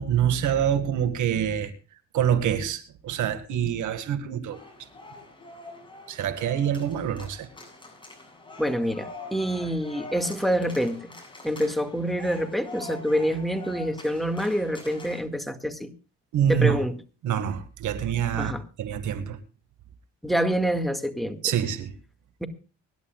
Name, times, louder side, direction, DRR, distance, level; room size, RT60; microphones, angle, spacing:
voice 1, 0.0-1.7 2.1-4.6 6.1-7.5 16.3-16.8 17.2-19.4 21.4-21.9, right 9 dB, 75° right, 1.8 m, -26 dB
sound 1, 4.5-15.2, left 2 dB, 15° left, 7.7 m, -44 dB
voice 2, 8.6-11.1 11.4-15.9 16.5-17.0 18.4-18.6 20.2-21.4 22.4-22.5, equal, ahead, 1.9 m, -26 dB
25.0 x 11.0 x 2.3 m
cardioid pair, 90°, 30 cm